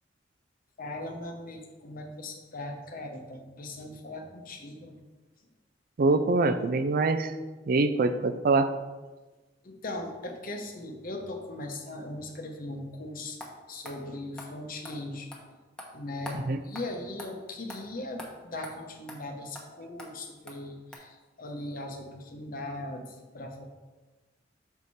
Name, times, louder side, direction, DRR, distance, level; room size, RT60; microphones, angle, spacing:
voice 1, 0.8-5.0 9.6-13.4 13.7-15.3 15.9-16.4 16.6-23.7, left 2 dB, 50° left, 4 dB, 0.9 m, -39 dB
voice 2, 6.0-7.3 7.7-8.7 16.5-16.6, right 3 dB, 50° right, 10 dB, 0.4 m, -24 dB
sound 1, 13.4-13.5 13.8-14.0 14.4-14.5 14.8-15.0 15.3-15.4 15.8-15.9 16.2-16.4 16.7-16.9 17.2-17.3 17.7-17.8 18.2-18.3 18.6-18.7 19.1-19.2 19.5-19.7 20.0-20.1 20.5-20.6 20.9-21.0, left 1 dB, 5° left, 1.0 m, -42 dB
6.6 x 4.7 x 4.2 m, 1.2 s
head